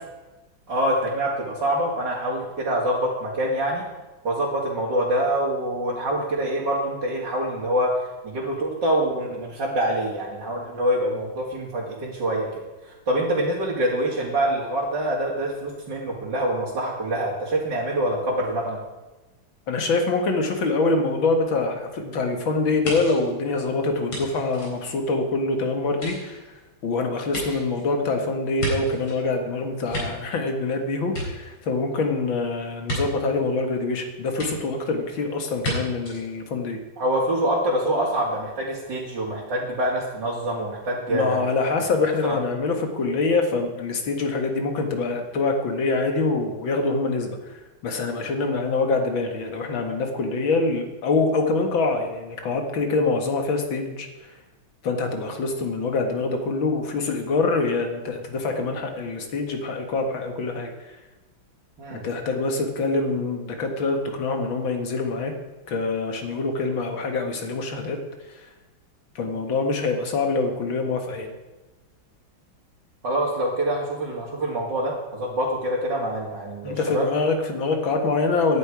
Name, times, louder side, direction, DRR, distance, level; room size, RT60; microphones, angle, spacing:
voice 1, 0.7-3.8 4.2-12.5 12.8-18.8 37.0-41.4 42.2-42.4 61.8-62.0 73.0-77.1, right 1 dB, 60° right, -5 dB, 2.9 m, -25 dB
voice 2, 19.7-26.4 26.8-36.8 41.1-54.3 54.8-61.0 61.9-65.3 65.7-68.0 68.3-68.5 69.2-71.3 76.6-78.6, left 3 dB, 75° left, 4 dB, 2.5 m, -25 dB
sound 1, 22.8-25.4 25.9-29.2 29.6-30.7 31.0-31.9 32.8-33.0 34.4-34.5 35.6-35.7 36.1-36.2, equal, 90° left, 5.3 m, -33 dB
18.0 x 11.0 x 4.8 m, 1.1 s
omnidirectional pair, 2.2 m